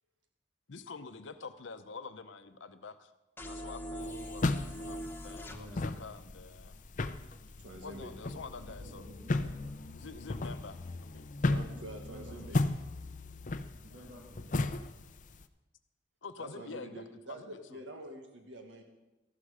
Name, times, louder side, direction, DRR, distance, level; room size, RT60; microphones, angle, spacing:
voice 1, 0.7-3.1 3.4-6.8 7.8-9.0 9.9-11.3 12.0-12.1 13.9-14.1 16.2-17.8, left 4 dB, 80° left, 10 dB, 0.7 m, -47 dB
sound 1, 3.4-5.6, equal, 10° left, 0.9 m, -41 dB
sound 2, 4.0-15.4, left 2 dB, 45° left, 0.6 m, -36 dB
sound 3, 5.1-13.3, equal, 35° right, 6.1 m, -67 dB
voice 2, 5.4-6.1 8.0-9.7 11.6-12.4 13.8-14.7, equal, 65° right, -6 dB, 3.1 m, -52 dB
voice 3, 7.6-8.1 11.5-12.6 16.4-18.8, right 1 dB, 80° right, 3 dB, 1.6 m, -46 dB
13.5 x 12.0 x 4.9 m, 1.1 s
head